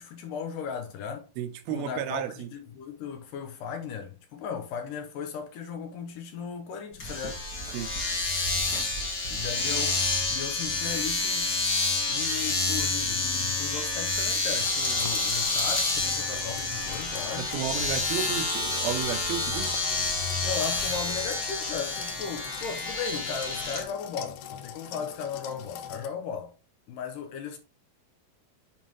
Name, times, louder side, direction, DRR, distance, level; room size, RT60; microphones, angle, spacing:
voice 1, 0.0-1.3 1.7-7.4 9.3-10.0 10.3-11.5 12.1-17.6 20.4-26.5 26.9-27.6, left 6 dB, 75° left, 2.3 m, -36 dB
voice 2, 1.4-2.5 7.7-7.9 17.4-19.8, right 9 dB, 80° right, 2.5 m, -32 dB
Domestic sounds home sounds, 7.0-23.8, left 3 dB, 40° left, 1.6 m, -29 dB
sound 1, 14.6-26.1, left 10 dB, 90° left, 2.7 m, -42 dB
7.2 x 5.3 x 3.0 m
omnidirectional pair, 4.4 m